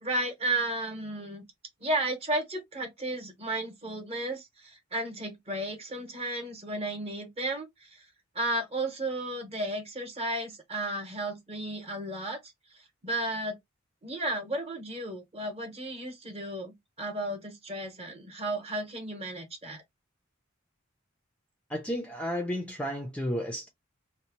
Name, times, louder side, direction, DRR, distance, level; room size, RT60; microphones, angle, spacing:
voice 1, 0.0-1.4 1.8-8.0 8.3-12.4 13.0-13.6 14.0-19.8, right 1 dB, 30° right, 0.9 m, -33 dB
voice 2, 21.7-23.7, equal, 5° left, 0.4 m, -32 dB
2.7 x 2.1 x 2.9 m
head